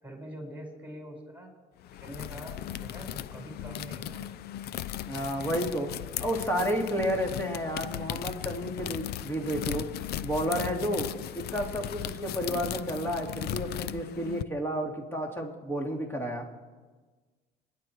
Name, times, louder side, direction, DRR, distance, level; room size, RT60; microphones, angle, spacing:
voice 1, 0.0-1.5 1.9-4.3, equal, 10° right, 1 dB, 5.2 m, -44 dB
sound 1, 1.8-14.4, left 12 dB, 70° left, 0.6 m, -37 dB
voice 2, 5.1-5.9 6.2-9.9 10.2-11.1 11.3-16.5, equal, 15° left, 1 dB, 3.1 m, -31 dB
27.5 x 10.5 x 4.7 m, 1.3 s
cardioid pair, 110°, 17 cm